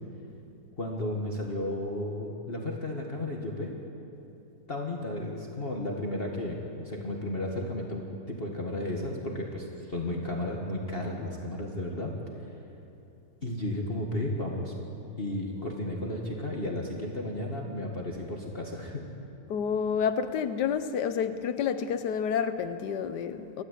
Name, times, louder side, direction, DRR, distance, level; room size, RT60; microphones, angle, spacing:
voice 1, 0.8-3.8 4.7-12.1 13.4-14.7 15.2-19.0, left 1 dB, 35° left, -1 dB, 2.0 m, -33 dB
voice 2, 19.5-23.6, left 7 dB, 90° left, 10 dB, 1.5 m, -29 dB
28.5 x 13.5 x 8.5 m, 2.7 s
omnidirectional pair, 1.7 m